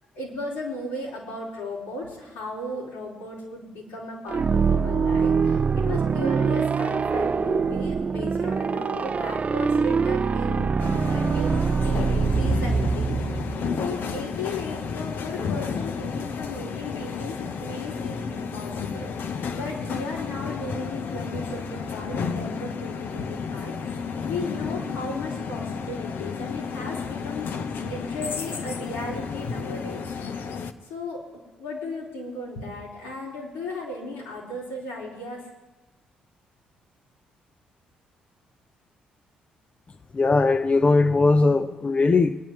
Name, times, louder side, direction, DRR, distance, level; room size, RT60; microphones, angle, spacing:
voice 1, 0.1-10.8 11.1-11.5 11.8-30.4 30.8-31.2 31.6-35.5, left 2 dB, 85° left, -6 dB, 4.5 m, -36 dB
sound 1, 4.3-14.0, right 5 dB, 35° right, 0.4 m, -24 dB
sound 2, 10.8-30.7, left 6 dB, 60° left, 0.9 m, -32 dB
voice 2, 40.1-42.4, left 3 dB, 35° left, 9 dB, 0.7 m, -19 dB
25.0 x 10.5 x 3.2 m, 1.1 s
hypercardioid pair, 50°, 4 cm